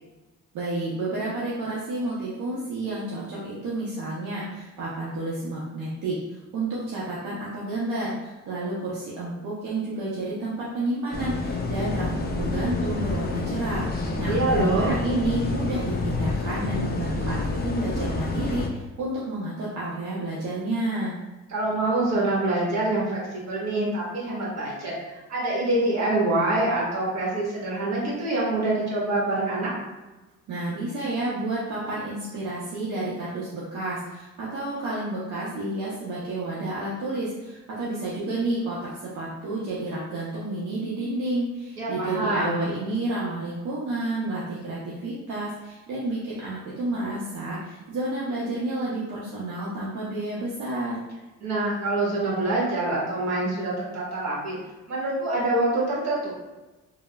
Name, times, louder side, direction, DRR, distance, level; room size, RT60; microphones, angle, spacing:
voice 1, 0.5-6.2 6.5-21.1 30.5-51.0, right 2 dB, 80° right, -7 dB, 0.6 m, -30 dB
sound 1, 11.1-18.7, left 3 dB, 35° left, 0.4 m, -28 dB
voice 2, 14.3-15.0 21.5-29.7 41.8-42.7 51.4-54.6 54.9-56.3, right 2 dB, 60° right, -5 dB, 1.1 m, -25 dB
3.2 x 2.0 x 2.2 m, 1.1 s
cardioid pair, 90°, 30 cm